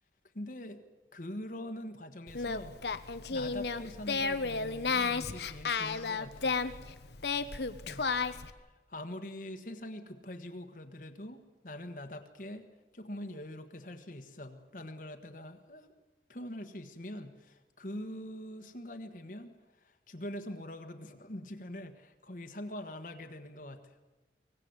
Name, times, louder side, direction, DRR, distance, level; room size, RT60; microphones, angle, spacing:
voice 1, 0.3-0.8 1.1-2.8 3.3-6.6 7.8-8.0 8.5-8.6 8.9-12.7 12.9-15.9 16.3-24.0, left 1 dB, 50° left, 6 dB, 1.4 m, -44 dB
Singing, 2.3-8.5, left 4 dB, 70° left, 1.1 m, -33 dB
24.5 x 18.5 x 8.0 m, 1.2 s
head